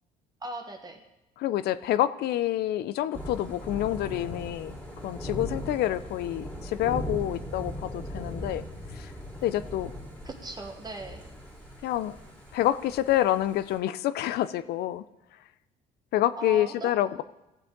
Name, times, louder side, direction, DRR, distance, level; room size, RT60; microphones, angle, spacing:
voice 1, 0.4-1.0 10.2-11.3 16.4-16.9, right 2 dB, 25° right, 4 dB, 1.3 m, -38 dB
voice 2, 1.4-4.7 5.0-8.6 8.9-9.1 9.4-9.9 11.8-12.1 12.5-15.0 16.1-17.2, left 13 dB, 70° left, 15 dB, 0.5 m, -27 dB
Thunder / Rain, 3.1-13.8, equal, 5° left, 2.5 m, -39 dB
16.0 x 7.7 x 3.9 m, 0.97 s
cardioid pair, 110°, 17 cm